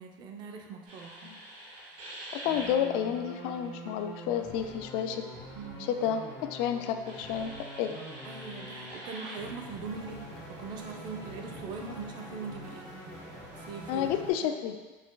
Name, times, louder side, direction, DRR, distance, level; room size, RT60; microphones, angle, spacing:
voice 1, 0.0-1.3 5.5-5.9 8.2-12.9 13.6-14.1, right 5 dB, 50° right, 3 dB, 0.6 m, -41 dB
sound 1, 0.8-14.3, right 1 dB, 70° right, 1.4 m, -44 dB
voice 2, 2.3-5.3 5.9-7.5 7.8-7.9 13.9-14.8, left 9 dB, 65° left, 7 dB, 0.4 m, -30 dB
5.0 x 3.4 x 2.2 m, 1.3 s
supercardioid pair, 120°, 10 cm